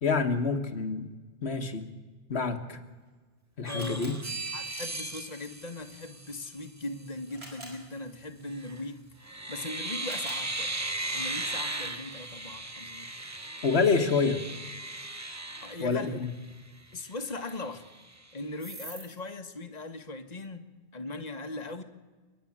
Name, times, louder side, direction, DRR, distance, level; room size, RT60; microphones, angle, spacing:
voice 1, 0.0-1.1 1.4-1.8 2.3-2.8 3.6-4.2 13.6-14.4 15.8-16.3, left 4 dB, 65° left, 7 dB, 1.8 m, -27 dB
Camera, 2.8-12.6, right 1 dB, 65° right, 6.2 m, -54 dB
voice 2, 3.7-4.0 4.5-10.7 11.1-13.1 15.6-16.2 16.9-17.8 18.3-20.7 20.9-21.8, left 2 dB, 35° left, 7 dB, 1.5 m, -39 dB
sound 1, 3.7-6.7 8.5-8.9 9.2-16.5 16.9-17.0 17.3-18.2 18.6-19.1, right 2 dB, 15° right, 0.9 m, -37 dB
28.5 x 11.0 x 8.7 m, 1.3 s
omnidirectional pair, 1.2 m